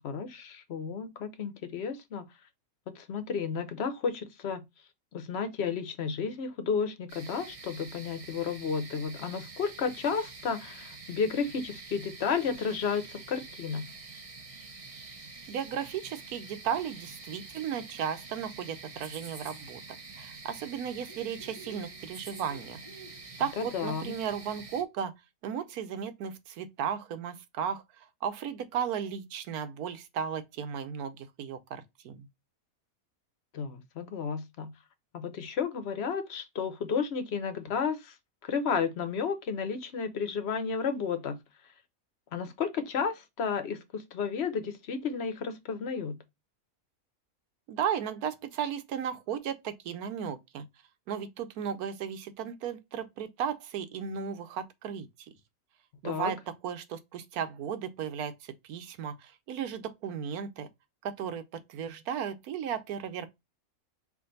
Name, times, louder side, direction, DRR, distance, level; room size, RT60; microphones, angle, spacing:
voice 1, 0.0-2.2 3.0-4.6 5.1-13.9 23.6-24.1 33.5-34.7 35.1-38.2 38.4-41.4 42.3-46.2 56.0-56.3, left 6 dB, 55° left, 0.9 m, -32 dB
sound 1, 7.1-24.8, right 3 dB, 30° right, 0.7 m, -47 dB
voice 2, 15.5-19.8 20.2-22.8 23.4-25.1 25.4-32.3 47.7-50.7 51.1-55.3 56.0-56.4 56.6-60.7 61.0-61.4 61.7-63.3, right 8 dB, 90° right, 1.2 m, -35 dB
4.8 x 2.6 x 3.9 m
omnidirectional pair, 1.5 m